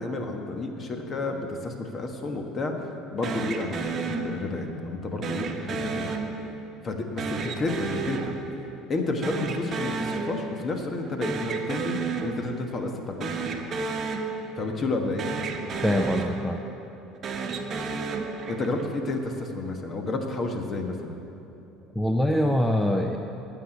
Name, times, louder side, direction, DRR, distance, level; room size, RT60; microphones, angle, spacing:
voice 1, 0.0-2.7 3.1-6.2 6.8-8.3 8.9-12.9 13.2-13.5 14.6-15.4 18.5-21.2, left 2 dB, 35° left, 4 dB, 1.4 m, -31 dB
sound 1, 3.2-4.7 5.2-6.8 7.2-9.0 9.2-10.8 11.0-12.7 13.1-14.9 15.2-16.8 17.2-18.9, right 4 dB, 45° right, 1.0 m, -32 dB
voice 2, 15.8-16.6 21.9-23.2, left 1 dB, 5° left, 3 dB, 0.7 m, -24 dB
9.3 x 6.9 x 7.9 m, 3.0 s
hypercardioid pair, 75°, 0 cm